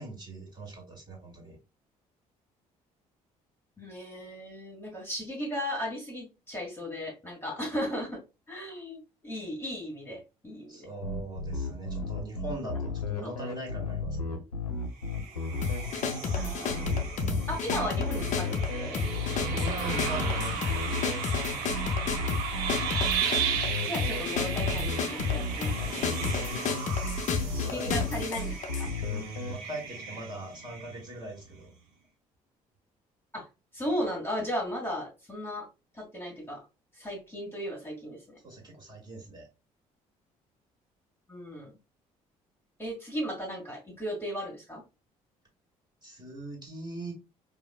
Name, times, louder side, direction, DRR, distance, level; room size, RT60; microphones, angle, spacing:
voice 1, 0.0-1.6 10.7-14.4 19.6-21.0 26.0-27.9 28.9-31.7 38.4-39.5 46.0-47.1, right 2 dB, 25° right, -2 dB, 1.8 m, -41 dB
voice 2, 3.8-8.2 8.5-10.9 13.2-13.3 16.4-16.9 17.5-19.0 23.8-26.1 26.4-26.7 27.5-28.9 33.3-33.5 33.7-35.7 35.9-36.6 36.9-38.4 41.3-41.7 42.8-44.8, equal, 15° left, -1 dB, 1.7 m, -36 dB
sound 1, 11.0-29.5, left 3 dB, 85° left, 0.6 m, -34 dB
sound 2, 15.0-31.3, right 6 dB, 60° right, 0.8 m, -35 dB
sound 3, 15.6-28.9, left 6 dB, 40° left, 0.6 m, -32 dB
4.7 x 2.1 x 2.3 m, 0.28 s
figure-of-eight pair, 50°, 19 cm